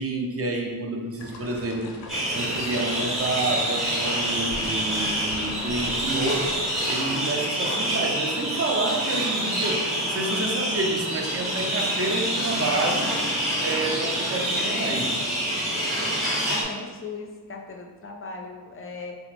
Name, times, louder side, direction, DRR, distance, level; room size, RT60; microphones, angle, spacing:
voice 1, 0.0-2.0 2.3-6.6 6.9-13.2 13.6-15.2, right 2 dB, 35° right, 1 dB, 0.5 m, -29 dB
sound 1, 1.2-7.2, left 2 dB, 85° left, 0.5 m, -41 dB
sound 2, 2.1-16.6, right 1 dB, ahead, 0.7 m, -27 dB
voice 2, 15.7-16.2 16.5-19.2, left 3 dB, 35° left, 2 dB, 0.4 m, -38 dB
3.3 x 2.0 x 3.1 m, 1.4 s
wide cardioid pair, 80°, 41 cm